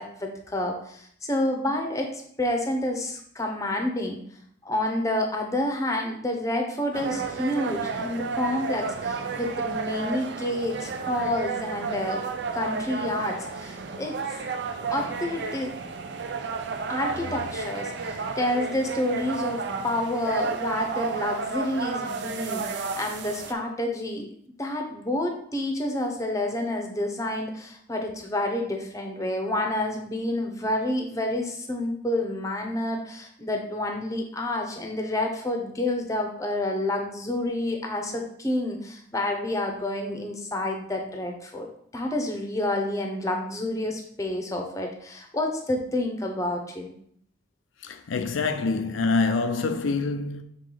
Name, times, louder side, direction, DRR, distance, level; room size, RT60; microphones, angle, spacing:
voice 1, 0.0-4.2 4.6-12.2 12.5-14.2 14.9-15.7 16.9-24.3 24.6-41.7 41.9-46.9, left 1 dB, 15° left, 0.7 m, -29 dB
sound 1, 6.9-23.5, right 4 dB, 60° right, 0.5 m, -32 dB
voice 2, 47.8-50.4, left 4 dB, 80° left, 0.5 m, -26 dB
6.6 x 3.7 x 3.8 m
head